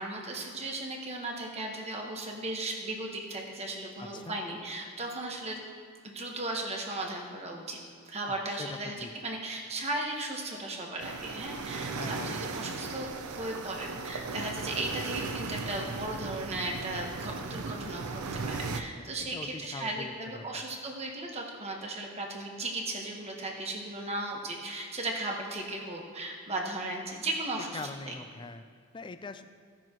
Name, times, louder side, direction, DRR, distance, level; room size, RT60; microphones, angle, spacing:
voice 1, 0.0-5.6 6.0-7.8 8.1-28.1, right 2 dB, 30° right, 0 dB, 1.3 m, -36 dB
voice 2, 4.0-4.4 8.3-9.1 12.0-12.4 19.2-20.6 27.7-28.6 28.9-29.4, left 3 dB, 20° left, 9 dB, 0.4 m, -42 dB
sound 1, 11.0-18.8, right 4 dB, 85° right, 0.6 m, -37 dB
16.5 x 6.1 x 3.0 m, 2.1 s
head